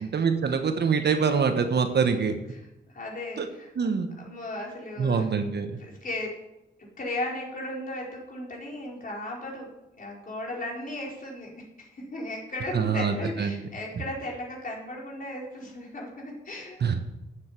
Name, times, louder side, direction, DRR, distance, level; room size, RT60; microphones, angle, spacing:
voice 1, 0.0-2.4 3.4-3.5 3.7-4.1 5.0-5.8 12.7-13.6 16.8-17.0, right 5 dB, 55° right, 7 dB, 1.3 m, -25 dB
voice 2, 1.9-2.2 2.9-3.7 4.2-5.3 5.8-6.3 6.8-9.7 10.0-11.5 11.8-16.9, left 1 dB, 45° left, -2 dB, 4.5 m, -36 dB
9.0 x 7.8 x 7.6 m, 0.91 s
cardioid pair, 70°, 21 cm